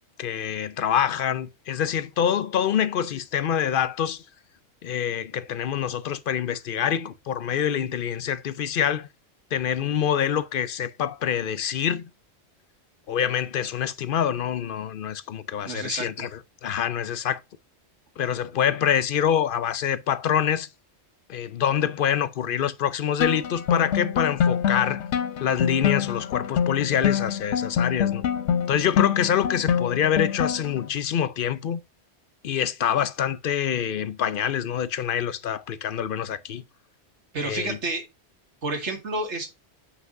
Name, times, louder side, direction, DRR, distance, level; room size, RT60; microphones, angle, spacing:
voice 1, 0.2-4.2 4.8-9.1 9.5-12.1 13.1-17.4 18.2-20.7 21.3-25.0 25.4-28.2 28.7-31.8 32.4-36.6 37.4-37.8, left 9 dB, 60° left, 0.7 m, -26 dB
voice 2, 15.6-16.3 37.3-38.1 38.6-39.5, right 2 dB, 80° right, 2.2 m, -30 dB
sound 1, 23.2-30.9, left 8 dB, 80° left, 1.0 m, -26 dB
7.8 x 5.8 x 2.6 m
omnidirectional pair, 1.2 m